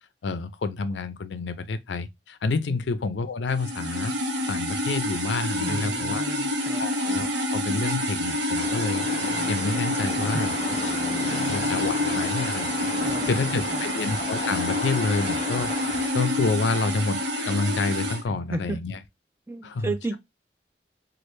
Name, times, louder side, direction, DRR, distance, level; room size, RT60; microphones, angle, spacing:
voice 1, 0.2-4.1 4.5-6.2 6.8-10.5 11.2-12.9 13.3-15.7 16.1-19.0 19.6-20.2, left 3 dB, 85° left, 0.5 m, -28 dB
sound 1, 3.5-18.2, left 1 dB, 90° right, 1.0 m, -28 dB
voice 2, 5.6-6.8 10.2-10.5 11.3-11.4 12.9-13.8 18.3-18.9 19.5-20.2, right 2 dB, 15° right, 0.4 m, -34 dB
sound 2, 8.5-16.1, left 3 dB, 40° left, 0.5 m, -34 dB
3.2 x 2.5 x 3.1 m
head